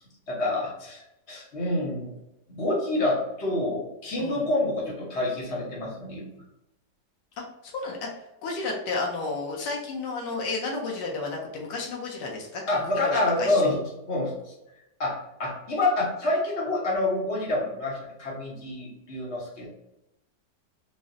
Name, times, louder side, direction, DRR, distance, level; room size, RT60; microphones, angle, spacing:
voice 1, 0.3-2.1 2.5-6.2 12.7-13.8 14.1-14.3 15.0-19.7, left 2 dB, 50° left, -3 dB, 0.9 m, -27 dB
voice 2, 7.6-8.1 8.4-12.8 13.1-13.8, left 3 dB, 85° left, -1 dB, 1.3 m, -32 dB
3.9 x 2.0 x 2.4 m, 0.90 s
omnidirectional pair, 1.8 m